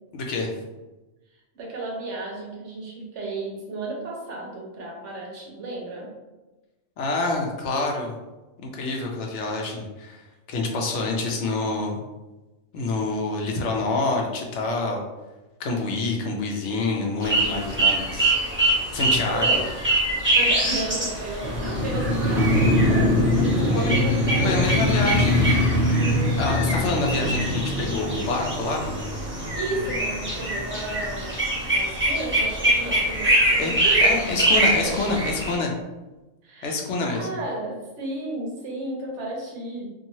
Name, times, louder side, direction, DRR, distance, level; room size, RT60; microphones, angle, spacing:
voice 1, 0.1-0.5 7.0-8.1 8.6-12.0 12.7-15.0 15.6-18.3 18.9-19.6 23.7-24.0 24.4-25.4 26.4-28.9 33.6-33.7 34.0-35.7 36.6-37.3, left 3 dB, 70° left, 0 dB, 0.8 m, -27 dB
voice 2, 1.5-6.1 19.3-19.6 20.3-24.8 26.0-26.5 29.5-34.5 34.8-35.1 36.4-39.9, right 2 dB, 65° right, -3 dB, 1.1 m, -33 dB
sound 1, 17.2-35.5, right 1 dB, 10° right, 0.7 m, -25 dB
Motorcycle, 21.4-31.5 31.9-32.0, left 1 dB, 40° left, 0.5 m, -23 dB
2.9 x 2.6 x 2.7 m, 1.1 s
omnidirectional pair, 1.3 m